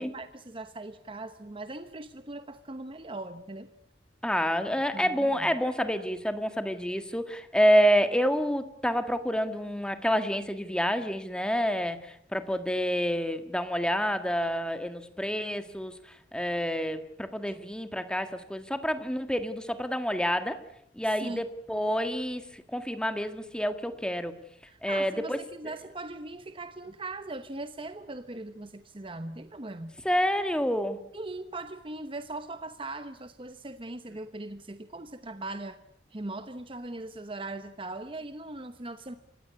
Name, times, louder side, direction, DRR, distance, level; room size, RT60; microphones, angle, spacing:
voice 1, 0.0-3.7 4.9-5.5 17.5-17.6 21.0-21.5 24.7-29.9 31.1-35.8 36.1-39.1, right 2 dB, 30° right, 10 dB, 1.0 m, -40 dB
voice 2, 4.2-20.6 20.9-24.3 24.8-25.4 25.6-25.7 30.0-31.0, equal, 5° left, 9 dB, 1.7 m, -28 dB
27.5 x 16.5 x 9.7 m, 0.73 s
head